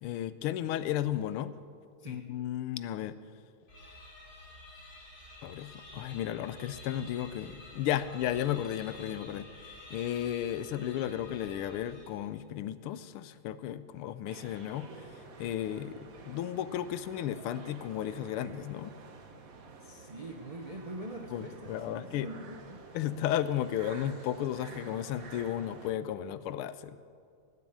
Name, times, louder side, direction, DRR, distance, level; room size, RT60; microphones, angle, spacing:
voice 1, 0.0-1.5 2.1-3.1 5.4-18.9 21.3-22.3 22.9-27.0, left 11 dB, 90° left, 14 dB, 1.6 m, -34 dB
sound 1, 3.7-12.4, left 2 dB, 65° left, 3.4 m, -50 dB
sound 2, 14.3-25.9, right 4 dB, 45° right, 1.4 m, -50 dB
voice 2, 19.8-22.8, right 1 dB, 80° right, 2 dB, 0.3 m, -44 dB
17.5 x 8.3 x 8.8 m, 2.2 s
omnidirectional pair, 2.3 m